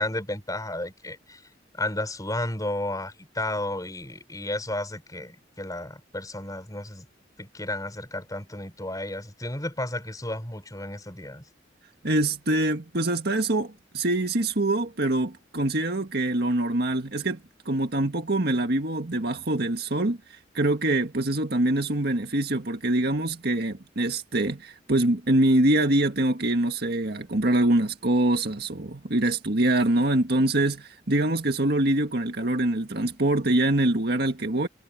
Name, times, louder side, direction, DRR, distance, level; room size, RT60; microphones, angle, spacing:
voice 1, 0.0-1.4 1.7-7.0 7.4-11.4, left 1 dB, 20° left, 5.1 m, -32 dB
voice 2, 12.0-17.4 17.7-20.2 20.5-34.7, right 1 dB, 60° right, 1.9 m, -24 dB
head